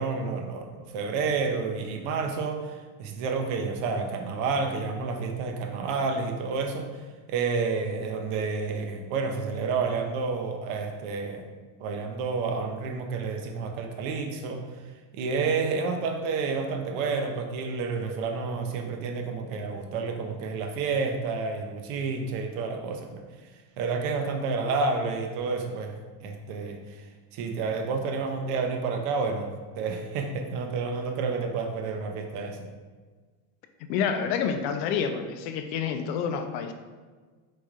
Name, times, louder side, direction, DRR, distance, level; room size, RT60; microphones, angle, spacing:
voice 1, 0.0-7.0 7.3-11.4 11.8-14.6 15.1-23.2 23.8-27.0 27.3-32.7, right 4 dB, 55° right, 4 dB, 0.6 m, -30 dB
voice 2, 33.8-36.7, left 7 dB, 75° left, 7 dB, 0.6 m, -28 dB
4.8 x 4.1 x 2.4 m, 1.4 s
cardioid pair, 170°, 50 cm